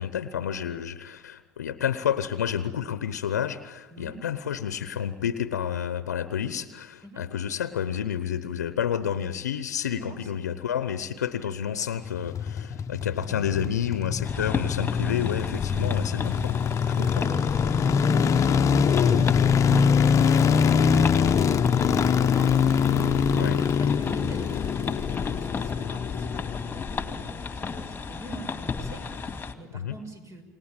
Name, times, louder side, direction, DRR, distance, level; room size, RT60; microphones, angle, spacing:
voice 1, 0.0-16.6 16.9-17.2 23.3-23.6 29.7-30.0, left 9 dB, 85° left, 13 dB, 0.9 m, -30 dB
voice 2, 10.0-10.3 13.3-13.6 17.0-17.5 17.7-21.4 21.6-23.0 23.3-30.4, right 2 dB, 35° right, 7 dB, 6.3 m, -44 dB
sound 1, 12.1-27.3 27.5-27.6, left 6 dB, 35° left, 1.0 m, -23 dB
sound 2, 14.2-29.5, left 4 dB, 20° left, 2.4 m, -35 dB
29.0 x 19.0 x 9.0 m, 1.2 s
hypercardioid pair, 70°, 9 cm